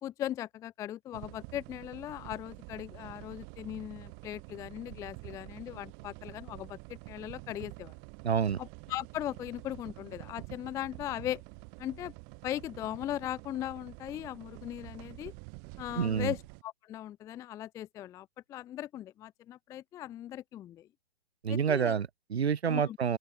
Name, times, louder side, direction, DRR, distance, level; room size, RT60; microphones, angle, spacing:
voice 1, 0.0-7.9 8.6-11.4 11.8-12.1 12.4-15.3 15.8-20.9 21.5-22.0 22.7-23.0, left 12 dB, 10° left, 0.5 m, -39 dB
sound 1, 1.1-16.6, right 40 dB or more, 30° right, 2.3 m, -48 dB
voice 2, 8.2-8.6 16.0-16.3 21.4-23.2, right 7 dB, 80° right, 1.0 m, -28 dB
open air
figure-of-eight pair, 125°, 32 cm